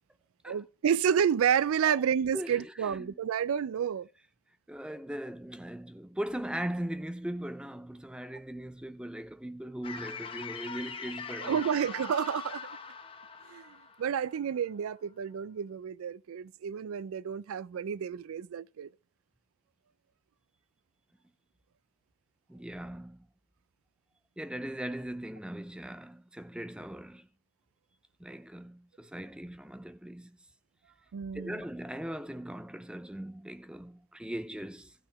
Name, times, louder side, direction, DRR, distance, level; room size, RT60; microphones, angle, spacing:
voice 1, 0.5-4.1 11.4-12.7 13.5-18.9 31.1-31.6, right 8 dB, 85° right, 0.4 m, -30 dB
voice 2, 2.3-3.1 4.7-11.6 22.5-23.2 24.4-27.3 28.2-30.3 31.3-34.9, right 1 dB, 5° right, 0.4 m, -39 dB
sound 1, 9.8-14.9, left 5 dB, 25° left, 0.8 m, -42 dB
13.5 x 5.8 x 4.7 m
head